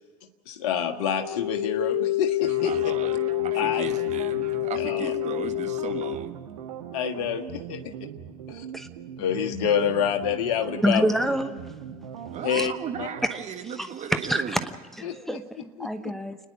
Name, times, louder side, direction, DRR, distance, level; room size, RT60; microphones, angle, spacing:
voice 1, 0.5-2.8 3.5-3.8 4.7-5.1 6.9-7.8 8.5-8.6 9.2-11.1 12.4-12.7 13.0-13.1 15.0-15.2 15.8-16.1, left 8 dB, 60° left, 6 dB, 1.5 m, -27 dB
sound 1, 1.2-6.1, left 17 dB, 80° left, 0.9 m, -27 dB
sound 2, 2.4-13.3, right 9 dB, 70° right, 1.6 m, -39 dB
voice 2, 2.6-3.2 3.4-6.4 12.3-14.6, right 8 dB, 35° right, 6 dB, 1.7 m, -36 dB
voice 3, 10.8-11.5 12.5-12.7 13.3-13.4 13.8-14.6 15.0-16.4, equal, ahead, 8 dB, 1.0 m, -27 dB
29.0 x 10.5 x 9.5 m, 1.3 s
figure-of-eight pair, 70°, 20 cm